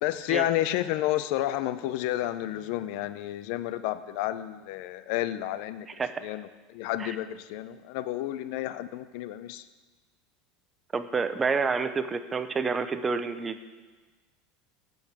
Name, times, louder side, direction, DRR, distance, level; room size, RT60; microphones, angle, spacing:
voice 1, 0.0-5.9 6.2-9.6, left 14 dB, 65° left, 13 dB, 0.6 m, -31 dB
voice 2, 10.9-13.6, right 4 dB, 20° right, 11 dB, 0.7 m, -28 dB
9.0 x 8.0 x 8.3 m, 1.3 s
supercardioid pair, 135°, 0 cm